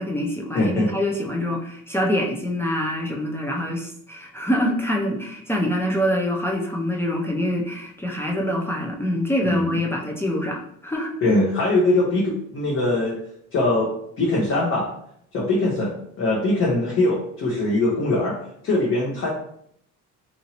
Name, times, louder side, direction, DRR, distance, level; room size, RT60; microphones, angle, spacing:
voice 1, 0.0-11.2, equal, 10° left, -1 dB, 0.3 m, -25 dB
voice 2, 0.5-0.9 9.4-9.8 11.2-13.2 13.5-14.9 15.3-18.4 18.6-19.3, left 2 dB, 45° left, -4 dB, 0.7 m, -22 dB
3.0 x 2.6 x 2.8 m, 0.70 s
cardioid pair, 125°, 31 cm